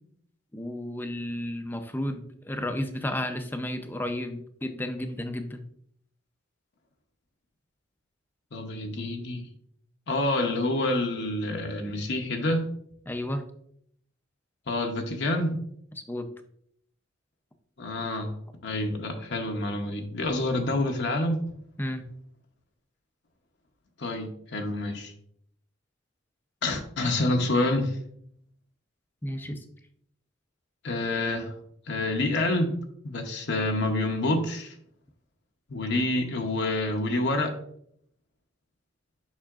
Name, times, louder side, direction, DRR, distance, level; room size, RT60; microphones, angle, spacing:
voice 1, 0.5-5.6 13.1-13.4 16.0-16.3 21.8-22.0 29.2-29.6, left 1 dB, 10° left, 7 dB, 0.5 m, -32 dB
voice 2, 8.5-9.5 10.1-12.7 14.7-15.6 17.8-18.4 18.6-21.4 24.0-25.1 26.6-28.0 30.8-31.5 31.9-32.8 33.0-34.7 35.7-37.5, left 2 dB, 60° left, 3 dB, 0.8 m, -27 dB
7.3 x 5.6 x 2.4 m, 0.67 s
head